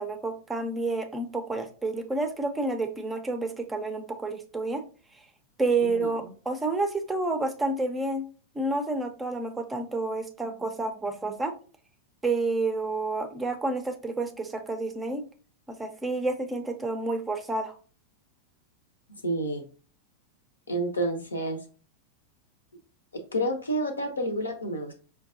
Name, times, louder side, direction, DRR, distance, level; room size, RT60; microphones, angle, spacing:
voice 1, 0.0-4.8 5.6-8.2 8.5-11.5 12.2-15.2 15.7-17.8, right 3 dB, 10° right, 5 dB, 0.5 m, -29 dB
voice 2, 5.8-6.3 19.2-19.6 20.7-21.6 23.3-25.0, right 1 dB, 75° left, 7 dB, 0.6 m, -29 dB
5.2 x 2.2 x 2.6 m, 0.38 s
figure-of-eight pair, 90°, 0 cm